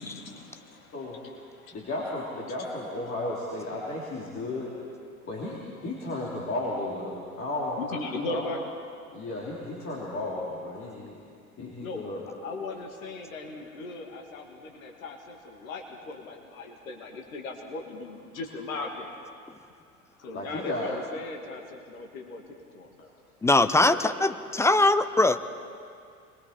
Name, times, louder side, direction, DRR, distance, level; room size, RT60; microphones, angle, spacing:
voice 1, 0.0-1.9 2.6-2.7 7.8-8.6 11.8-12.0 12.4-19.2 20.2-22.4 22.7-23.1, left 3 dB, 70° left, 3 dB, 2.5 m, -38 dB
voice 2, 1.7-4.7 5.3-8.4 9.1-11.2 11.6-12.2 20.3-20.9 23.8-24.0, left 2 dB, 30° left, -5 dB, 3.4 m, -34 dB
voice 3, 23.4-25.4, left 2 dB, 5° left, 10 dB, 0.4 m, -21 dB
28.0 x 22.0 x 4.5 m, 2.4 s
figure-of-eight pair, 75°, 43 cm